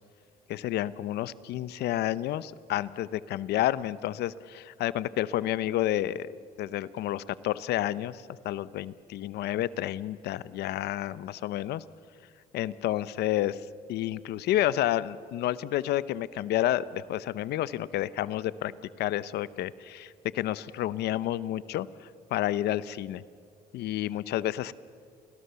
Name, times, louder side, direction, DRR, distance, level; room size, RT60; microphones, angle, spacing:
voice 1, 0.5-6.3 6.6-11.8 12.5-13.6 13.9-18.7 19.0-21.9 22.3-23.2 23.7-24.7, left 13 dB, 75° left, 17 dB, 0.8 m, -30 dB
30.0 x 23.5 x 6.9 m, 2.3 s
cardioid pair, 110°, 17 cm